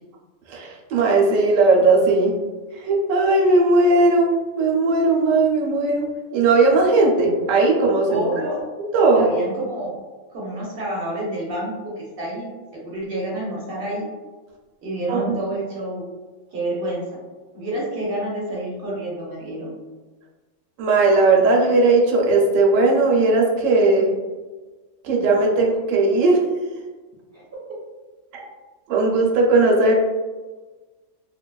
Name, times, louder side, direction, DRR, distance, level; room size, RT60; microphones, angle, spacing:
voice 1, 0.5-2.3 2.8-4.3 4.6-8.2 8.9-9.2 15.1-15.4 20.8-24.1 25.0-26.4 28.3-28.5 28.9-29.9, right 3 dB, 80° right, -1 dB, 0.9 m, -17 dB
voice 2, 8.1-8.6 9.2-10.0 10.3-14.1 14.8-16.0 16.5-17.2 17.5-19.7 27.3-27.4, right 1 dB, 55° right, -5 dB, 0.8 m, -28 dB
3.0 x 2.2 x 2.2 m, 1.3 s
omnidirectional pair, 1.3 m